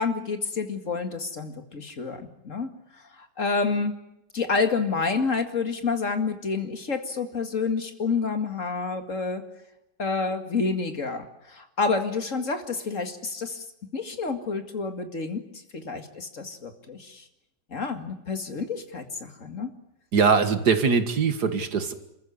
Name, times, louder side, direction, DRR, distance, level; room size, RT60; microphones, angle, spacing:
voice 1, 0.0-2.7 3.2-3.9 4.3-9.4 10.0-13.6 13.9-15.4 15.7-17.2 17.7-19.7, left 4 dB, 50° left, 7 dB, 2.5 m, -28 dB
voice 2, 20.1-21.9, right 5 dB, 70° right, 9 dB, 2.3 m, -22 dB
28.0 x 14.5 x 9.9 m, 0.86 s
omnidirectional pair, 1.8 m